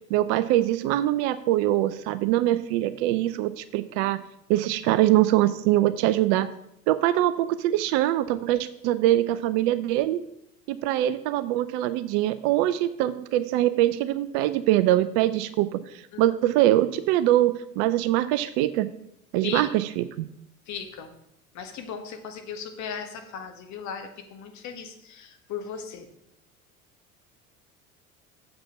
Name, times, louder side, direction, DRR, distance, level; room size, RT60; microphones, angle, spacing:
voice 1, 0.0-4.2 4.5-6.5 6.9-10.2 10.7-18.9 19.3-20.3, right 14 dB, 45° right, 13 dB, 0.6 m, -23 dB
voice 2, 20.7-21.1 21.5-26.1, left 7 dB, 40° left, 5 dB, 1.5 m, -37 dB
7.4 x 5.1 x 7.0 m, 0.77 s
figure-of-eight pair, 70°, 42 cm